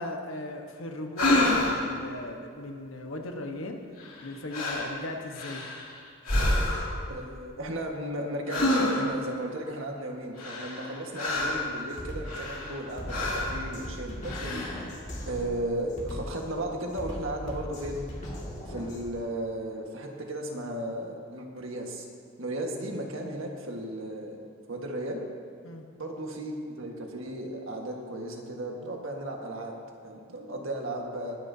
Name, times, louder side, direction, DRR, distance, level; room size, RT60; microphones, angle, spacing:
voice 1, 0.0-3.8 4.2-5.6 25.6-25.9, left 2 dB, 70° left, 3 dB, 1.2 m, -37 dB
sound 1, 1.2-1.9 4.0-4.2 4.5-4.9 5.3-5.9 6.2-7.0 8.5-9.2 10.4-11.7 12.2-12.8 13.1-13.6 14.2-14.8, left 1 dB, 90° left, 2.5 m, -27 dB
voice 2, 7.1-14.6 15.3-18.0 18.6-22.1 22.4-24.4 24.7-25.2 26.0-29.7 30.0-31.4, right 1 dB, 75° right, 1 dB, 1.6 m, -35 dB
Drum kit, 11.2-11.4 11.9-19.1, equal, 35° left, 2.2 m, -39 dB
21.0 x 9.6 x 2.8 m, 2.2 s
head